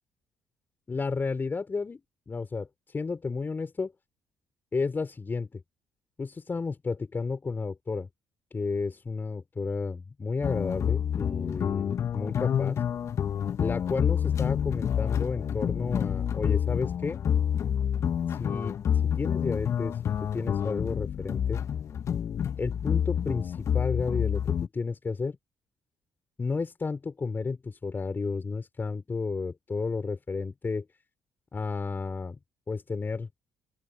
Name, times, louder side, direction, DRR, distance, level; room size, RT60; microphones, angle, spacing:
voice 1, 0.9-2.0 2.3-3.9 4.7-5.6 6.2-8.1 8.5-12.8 13.6-17.2 18.3-18.7 19.2-21.6 22.6-25.4 26.4-30.9 31.5-32.4 32.7-33.3, left 4 dB, 30° left, 5.5 m, -32 dB
sound 1, 10.4-24.7, left 8 dB, 50° left, 2.0 m, -28 dB
open air
figure-of-eight pair, 45°, 6 cm